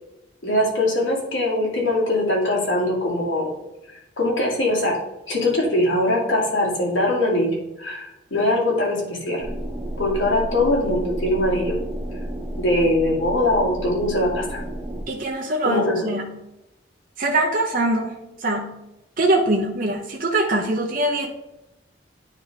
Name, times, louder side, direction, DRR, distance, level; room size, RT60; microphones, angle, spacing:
voice 1, 0.4-3.5 4.2-5.0 5.3-9.5 10.0-11.8 12.6-14.6 15.6-16.1, left 1 dB, 85° left, -4 dB, 2.4 m, -22 dB
sound 1, 9.4-15.0, right 1 dB, 10° right, 0.8 m, -31 dB
voice 2, 15.1-16.3 17.2-18.7 19.2-21.3, right 2 dB, 45° right, 1 dB, 0.7 m, -23 dB
9.6 x 3.4 x 3.5 m, 0.93 s
head